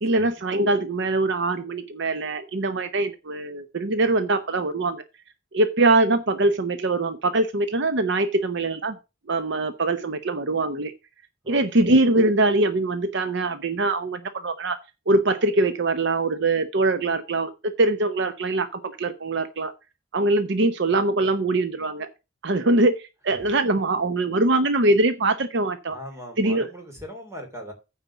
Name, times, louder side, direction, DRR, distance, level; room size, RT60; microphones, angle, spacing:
voice 1, 0.0-5.0 5.5-8.9 9.3-10.9 11.5-14.8 15.1-19.7 20.1-22.1 22.4-26.0 26.4-26.7, right 2 dB, 60° right, 0.8 m, -23 dB
voice 2, 11.4-11.9 25.9-27.7, equal, 15° right, 3.1 m, -40 dB
9.2 x 4.4 x 6.9 m
head